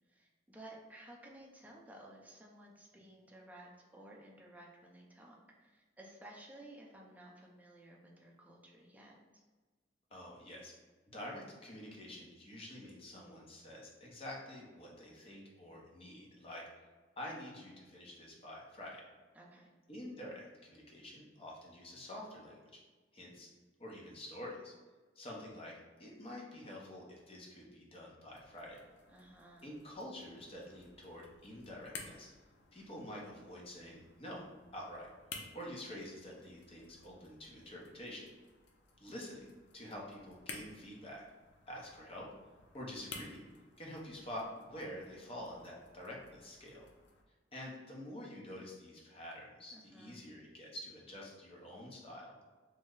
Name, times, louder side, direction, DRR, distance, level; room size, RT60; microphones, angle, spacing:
voice 1, 0.1-9.4 19.3-19.7 29.1-29.7 39.2-39.5 49.7-50.3, right 1 dB, 10° right, -2 dB, 0.5 m, -55 dB
voice 2, 10.1-10.7 11.1-16.6 17.2-19.0 19.9-22.6 23.1-23.5 23.8-24.7 25.2-28.8 29.6-32.3 32.7-35.1 35.5-38.2 39.0-39.5 39.7-41.2 41.7-42.3 42.7-43.4 43.8-46.8 47.5-52.5, left 1 dB, 30° left, -3 dB, 0.7 m, -48 dB
sound 1, 28.3-47.2, left 4 dB, 65° left, 0.5 m, -55 dB
3.1 x 2.1 x 3.6 m, 1.3 s
head